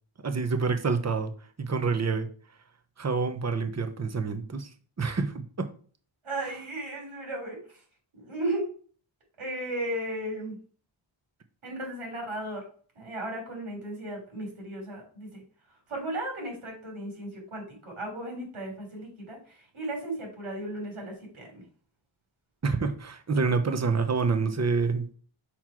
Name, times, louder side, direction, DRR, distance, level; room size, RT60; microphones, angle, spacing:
voice 1, 0.2-1.3 1.6-2.3 3.0-4.7 5.0-5.7 22.6-25.1, right 4 dB, 35° right, 8 dB, 0.9 m, -27 dB
voice 2, 6.2-7.6 8.1-8.7 9.4-10.6 11.6-12.7 13.0-15.3 15.9-21.6, right 1 dB, 85° right, 0 dB, 3.5 m, -35 dB
6.0 x 4.4 x 4.5 m, 0.43 s
wide cardioid pair, 70°, 48 cm